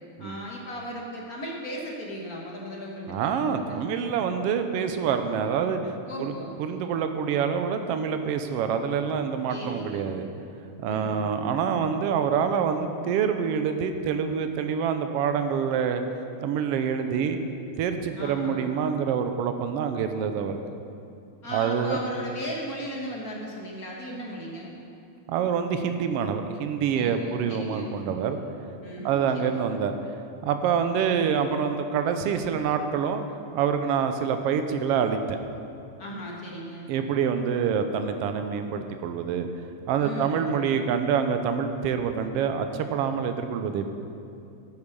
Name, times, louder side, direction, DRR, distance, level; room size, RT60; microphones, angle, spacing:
voice 1, 0.2-3.8 6.0-6.6 9.5-10.1 10.8-11.3 18.2-18.6 21.4-24.8 26.9-27.9 28.8-29.6 36.0-36.9 40.0-40.4, equal, 45° left, -2 dB, 1.3 m, -36 dB
voice 2, 3.1-5.9 6.2-6.3 6.6-10.3 10.8-16.0 16.4-17.4 17.8-20.6 21.5-22.0 25.3-28.4 29.0-30.0 30.4-33.2 33.5-35.4 36.9-39.5 39.9-43.9, right 7 dB, 80° right, 7 dB, 1.4 m, -26 dB
13.0 x 8.4 x 5.3 m, 2.6 s
omnidirectional pair, 3.3 m